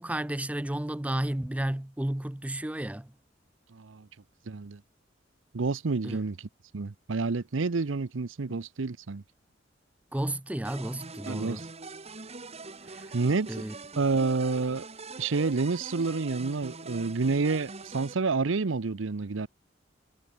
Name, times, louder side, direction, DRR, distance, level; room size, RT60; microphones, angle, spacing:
voice 1, 0.0-3.1 6.0-6.2 10.1-11.6 12.9-13.2 13.5-13.7, right 1 dB, 5° right, 0.5 m, -32 dB
voice 2, 3.7-4.1 4.5-4.8 5.5-6.4 6.7-9.2 11.3-11.7 13.1-13.5 14.0-14.9 15.2-19.5, right 4 dB, 85° right, 0.7 m, -29 dB
sound 1, 10.6-18.1, right 3 dB, 35° right, 2.4 m, -43 dB
head